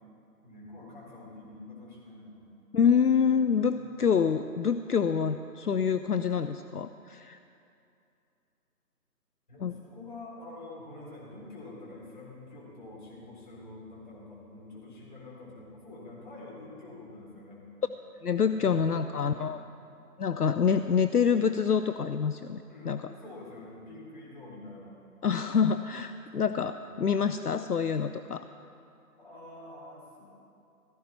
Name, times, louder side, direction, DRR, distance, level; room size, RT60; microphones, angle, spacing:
voice 1, 0.4-2.5 3.5-3.9 9.5-17.6 18.5-18.8 19.1-19.4 22.7-25.0 26.1-26.5 26.9-27.0 29.2-30.2, left 2 dB, 30° left, -6 dB, 3.9 m, -47 dB
voice 2, 2.7-7.4 9.6-9.8 18.2-19.6 20.2-23.1 25.2-28.5, left 6 dB, 75° left, 10 dB, 0.6 m, -26 dB
16.5 x 14.0 x 4.3 m, 2.6 s
figure-of-eight pair, 160°, 47 cm